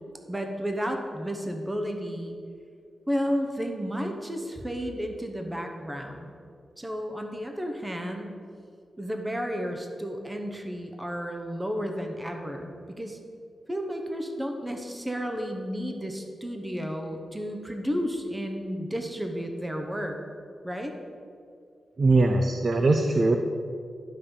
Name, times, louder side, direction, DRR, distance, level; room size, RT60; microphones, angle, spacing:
voice 1, 0.3-2.4 3.1-6.3 6.8-8.4 9.0-13.2 13.7-20.2 20.6-20.9, equal, 10° right, 3 dB, 0.9 m, -32 dB
voice 2, 22.0-23.4, right 2 dB, 30° right, 5 dB, 0.6 m, -21 dB
12.0 x 5.4 x 7.0 m, 2.3 s
wide cardioid pair, 170°, 0 cm